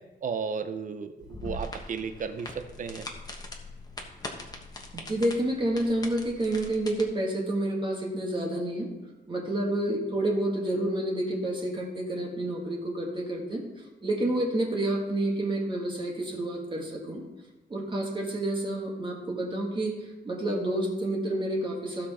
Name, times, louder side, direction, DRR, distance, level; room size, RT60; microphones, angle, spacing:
voice 1, 0.2-3.1, right 5 dB, 45° right, 9 dB, 0.8 m, -34 dB
sound 1, 1.2-7.0, left 1 dB, 20° left, 1.4 m, -41 dB
voice 2, 4.9-8.9 9.3-13.6 14.0-17.2 17.7-19.9 20.2-22.1, right 1 dB, 25° right, -1 dB, 1.6 m, -29 dB
15.0 x 5.9 x 4.2 m, 1.1 s
wide cardioid pair, 150°, 18 cm